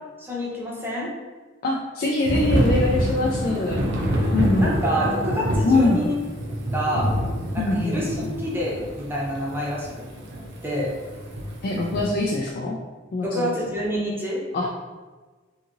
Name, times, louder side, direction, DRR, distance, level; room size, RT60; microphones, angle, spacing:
voice 1, 0.2-1.1 4.6-6.1 6.7-7.1 7.5-10.0 10.6-10.9 13.2-14.4, equal, 10° right, -5 dB, 0.6 m, -27 dB
voice 2, 1.6-4.8 5.6-6.1 7.6-8.3 11.6-12.8 13.1-13.5 14.5-14.7, left 2 dB, 50° left, -2 dB, 0.3 m, -23 dB
Thunder / Rain, 2.3-12.1, equal, 65° right, 0.5 m, -26 dB
2.8 x 2.7 x 2.5 m, 1.3 s
head